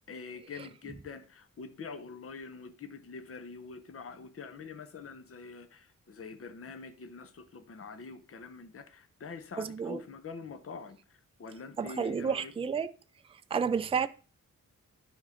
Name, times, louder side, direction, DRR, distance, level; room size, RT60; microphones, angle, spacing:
voice 1, 0.1-12.5, left 4 dB, 45° left, 0.8 m, -45 dB
voice 2, 9.6-10.0 11.8-12.9 13.5-14.1, right 6 dB, 20° right, 0.3 m, -30 dB
10.0 x 3.7 x 6.3 m
wide cardioid pair, 170°, 33 cm